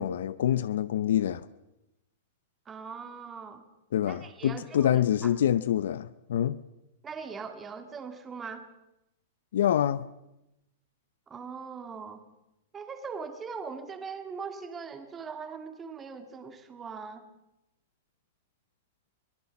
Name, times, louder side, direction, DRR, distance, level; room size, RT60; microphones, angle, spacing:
voice 1, 0.0-1.4 3.9-6.6 9.5-10.1, left 10 dB, 75° left, 0.7 m, -26 dB
voice 2, 2.7-3.6 4.0-5.3 7.0-8.6 11.3-12.2 12.7-17.2, right 5 dB, 15° right, 2.1 m, -41 dB
23.5 x 17.5 x 7.2 m
hypercardioid pair, 145°, 0 cm